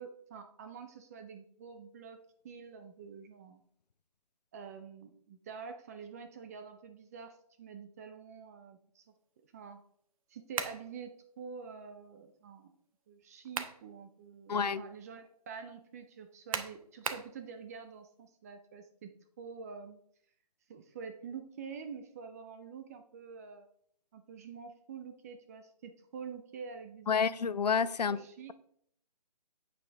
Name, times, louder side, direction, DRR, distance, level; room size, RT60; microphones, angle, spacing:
voice 1, 0.0-2.2 2.4-3.6 4.5-9.1 9.5-9.8 10.3-12.7 13.1-20.0 20.7-23.7 24.1-27.4 28.1-28.5, right 6 dB, 25° right, 0.6 m, -47 dB
sound 1, 10.5-10.9 13.2-13.8 14.3-14.4 16.5-17.3, right 6 dB, 55° right, 1.1 m, -36 dB
voice 2, 14.5-14.8 27.1-28.2, left 6 dB, 75° left, 0.7 m, -29 dB
8.7 x 7.4 x 3.5 m
hypercardioid pair, 155°, 21 cm